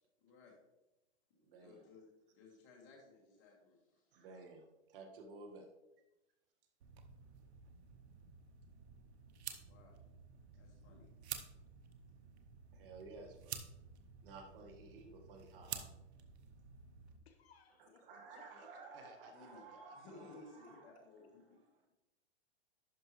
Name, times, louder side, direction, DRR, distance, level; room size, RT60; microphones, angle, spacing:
voice 1, 0.2-0.6 1.6-4.1 9.7-10.1 10.5-11.1 19.3-19.6 19.9-21.6, left 3 dB, 35° left, -1 dB, 2.6 m, -59 dB
voice 2, 1.4-1.8 4.1-5.7 12.7-13.6 14.2-15.9 18.0-20.9, right 3 dB, 50° right, 3 dB, 1.6 m, -54 dB
sound 1, 6.8-17.2, right 7 dB, 65° right, 1.0 m, -51 dB
voice 3, 17.2-19.3, left 5 dB, 60° left, 6 dB, 1.2 m, -67 dB
11.0 x 5.3 x 3.1 m, 0.94 s
hypercardioid pair, 145°, 35 cm